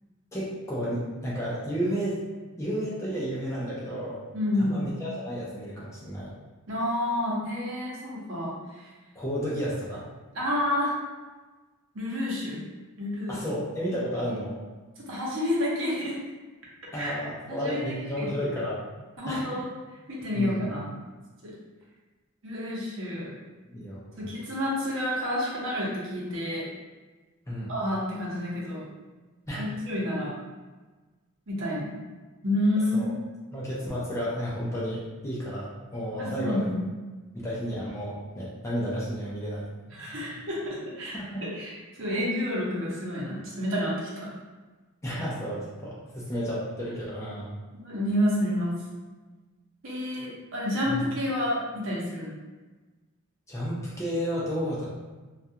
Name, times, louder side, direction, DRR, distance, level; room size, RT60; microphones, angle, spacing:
voice 1, 0.3-2.2 2.6-4.2 4.6-6.3 9.1-10.0 13.3-14.6 16.9-18.8 19.3-19.6 20.3-20.6 23.7-24.3 27.5-27.7 29.5-29.7 32.9-33.1 33.5-36.7 37.3-39.7 41.1-41.4 45.0-47.5 50.9-51.0 53.5-54.9, equal, 15° left, -7 dB, 0.4 m, -32 dB
voice 2, 4.3-4.8 6.7-8.9 10.3-10.9 11.9-12.7 13.0-13.4 15.1-16.2 16.9-17.1 17.5-17.8 18.2-18.3 19.2-19.6 20.1-20.8 21.4-21.5 22.4-23.3 24.2-26.6 27.7-28.8 29.6-30.3 31.5-32.0 32.4-33.1 36.2-36.9 39.9-41.2 41.5-44.3 47.8-48.7 49.8-52.3, left 1 dB, 60° right, -5 dB, 0.7 m, -29 dB
2.3 x 2.2 x 2.7 m, 1.3 s
head